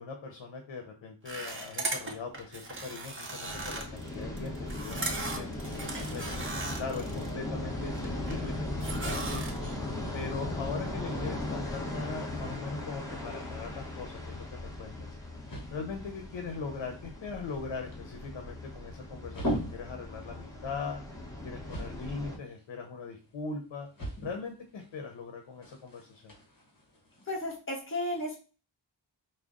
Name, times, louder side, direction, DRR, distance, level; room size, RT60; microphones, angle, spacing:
voice 1, 0.0-9.5 10.1-15.1 15.7-21.0 21.4-23.9 24.2-26.3, left 4 dB, 85° left, 4 dB, 0.8 m, -40 dB
sound 1, 1.2-7.3 7.7-8.5 8.8-9.8, right 2 dB, 25° right, 0.8 m, -38 dB
sound 2, 3.4-22.4, left 1 dB, 5° left, 1.1 m, -38 dB
sound 3, 15.1-27.6, equal, 45° left, 1.5 m, -43 dB
voice 2, 27.3-28.4, left 1 dB, 25° left, -3 dB, 1.4 m, -33 dB
4.8 x 2.2 x 3.7 m, 0.34 s
wide cardioid pair, 120°, 45 cm